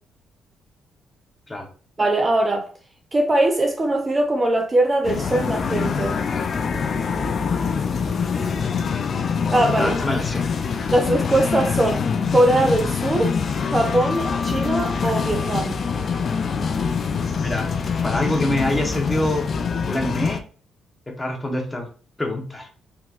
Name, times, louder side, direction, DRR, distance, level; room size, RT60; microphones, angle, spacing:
voice 1, 2.0-2.7 3.1-6.2 9.5-9.9 10.9-12.0 12.3-13.3 13.7-15.7, right 1 dB, 25° right, 0.5 m, -21 dB
sound 1, 5.0-20.4, left 6 dB, 50° left, 0.4 m, -24 dB
voice 2, 8.3-9.0 9.7-10.5 17.4-17.7 18.0-19.5 19.9-20.4 21.1-21.9 22.2-22.7, left 1 dB, 15° left, 1.0 m, -25 dB
3.4 x 2.9 x 2.5 m
cardioid pair, 90°, 0 cm